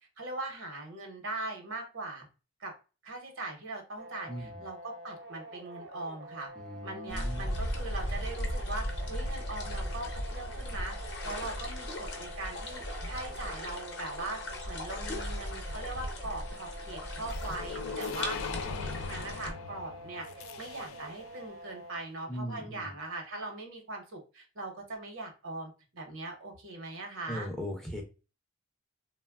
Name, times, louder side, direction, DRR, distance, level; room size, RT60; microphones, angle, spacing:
voice 1, 0.2-2.3 2.6-2.7 3.0-6.5 6.8-27.5, right 2 dB, 75° right, 3 dB, 0.8 m, -41 dB
sound 1, 4.0-22.0, right 1 dB, 55° right, 0.4 m, -47 dB
voice 2, 4.3-4.6 6.6-7.4 22.3-22.9 27.3-28.0, equal, ahead, 1 dB, 0.4 m, -39 dB
sound 2, 7.1-19.5, left 1 dB, 55° left, 0.6 m, -37 dB
sound 3, 17.3-21.3, left 6 dB, 90° left, 0.3 m, -40 dB
3.1 x 2.1 x 2.2 m, 0.32 s
head